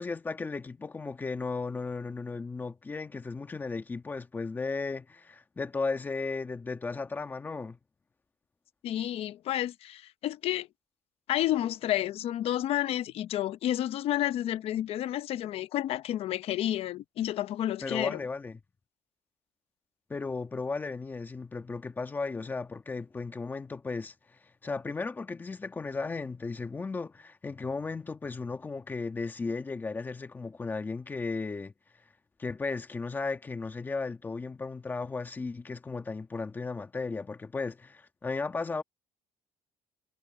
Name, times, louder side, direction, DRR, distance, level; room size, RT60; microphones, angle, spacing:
voice 1, 0.0-7.8 17.8-18.6 20.1-31.7 32.4-38.8, left 4 dB, 15° left, 1.4 m, -35 dB
voice 2, 8.8-10.7 11.3-18.2, left 13 dB, 55° left, 0.9 m, -30 dB
cardioid pair, 165°, 12 cm